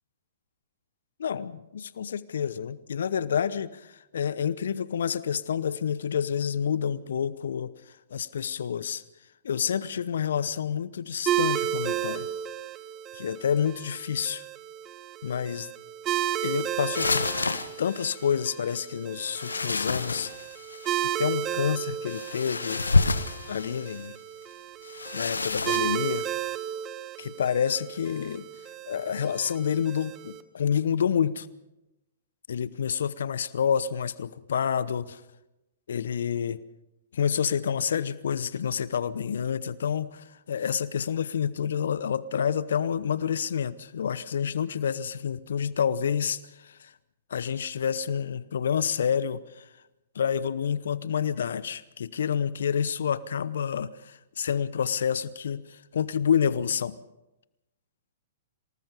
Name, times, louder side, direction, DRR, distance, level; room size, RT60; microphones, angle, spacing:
voice 1, 1.2-7.7 8.1-9.0 9.4-12.3 13.1-14.4 15.2-15.7 16.4-17.2 17.8-20.3 21.2-22.8 23.5-24.2 25.1-26.3 27.2-28.5 28.9-31.5 32.5-35.2 35.9-36.6 37.1-46.9 47.3-49.7 50.1-56.9, left 7 dB, 65° left, 18 dB, 0.8 m, -28 dB
sound 1, 11.3-30.4, right 11 dB, 25° right, 1.3 m, -33 dB
sound 2, 16.9-18.2 19.2-21.0 22.1-24.0 24.8-25.8, left 3 dB, 85° left, 1.2 m, -28 dB
26.5 x 19.0 x 5.2 m, 0.94 s
figure-of-eight pair, 115°, 0 cm